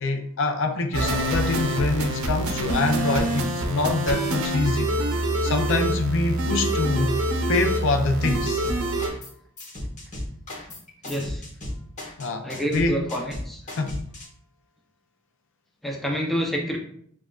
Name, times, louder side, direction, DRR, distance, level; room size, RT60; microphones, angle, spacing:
voice 1, 0.0-7.2 7.5-8.7 12.2-13.1 13.8-14.1, left 3 dB, 60° left, 0.4 m, -25 dB
sound 1, 0.9-9.1, right 1 dB, 80° right, 0.7 m, -25 dB
sound 2, 8.3-9.3 9.6-14.3, left 1 dB, 35° left, 1.2 m, -35 dB
voice 2, 11.0-11.4 12.4-13.6 15.8-16.8, equal, ahead, 0.6 m, -28 dB
7.2 x 2.5 x 2.3 m
head